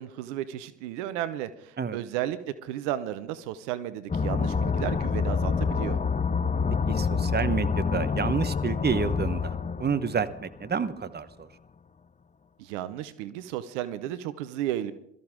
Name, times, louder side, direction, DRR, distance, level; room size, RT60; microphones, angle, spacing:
voice 1, 0.0-6.0 12.6-14.9, right 12 dB, 75° right, 14 dB, 0.8 m, -33 dB
sound 1, 4.1-10.6, left 5 dB, 20° left, 0.7 m, -27 dB
voice 2, 6.9-11.5, right 6 dB, 25° right, 12 dB, 1.1 m, -29 dB
22.0 x 13.5 x 3.7 m, 0.75 s
hypercardioid pair, 50°, 36 cm